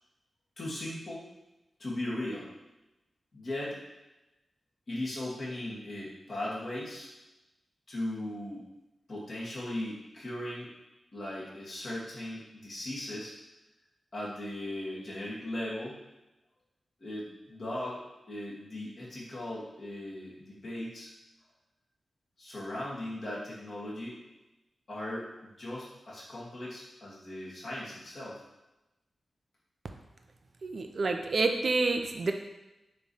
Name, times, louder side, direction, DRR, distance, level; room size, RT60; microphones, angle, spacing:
voice 1, 0.6-1.3 1.8-2.5 3.3-3.8 4.9-7.1 7.9-8.7 9.1-10.7 11.1-13.3 14.1-16.0 17.0-18.0 18.3-21.1 22.4-24.2 24.9-28.4, left 1 dB, 40° left, -7 dB, 2.3 m, -38 dB
voice 2, 30.6-32.3, right 3 dB, 45° right, 5 dB, 0.6 m, -28 dB
7.3 x 3.3 x 5.6 m, 0.98 s
wide cardioid pair, 175°, 0 cm